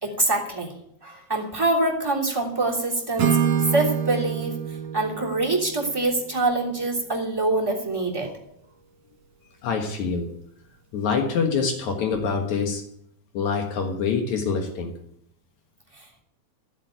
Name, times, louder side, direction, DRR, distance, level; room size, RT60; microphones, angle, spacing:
voice 1, 0.0-0.7 1.0-3.4 3.7-4.6 4.9-8.3, right 2 dB, 10° right, -3 dB, 3.0 m, -25 dB
Acoustic guitar / Strum, 3.2-7.1, right 8 dB, 65° right, 2.6 m, -27 dB
voice 2, 9.6-10.3 10.9-12.8 13.3-14.9, left 5 dB, 75° left, 3 dB, 2.9 m, -25 dB
13.5 x 7.9 x 9.2 m, 0.73 s
omnidirectional pair, 3.3 m